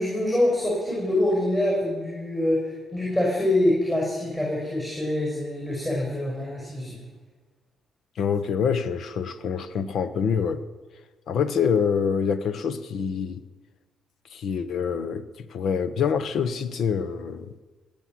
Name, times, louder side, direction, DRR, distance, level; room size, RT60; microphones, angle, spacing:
voice 1, 0.0-7.0, left 1 dB, 20° left, -2 dB, 6.0 m, -25 dB
voice 2, 8.2-10.6 11.3-13.4 14.3-15.2 15.5-17.5, left 6 dB, 65° left, 13 dB, 1.0 m, -26 dB
20.0 x 8.9 x 7.7 m, 1.3 s
cardioid pair, 90°, 0 cm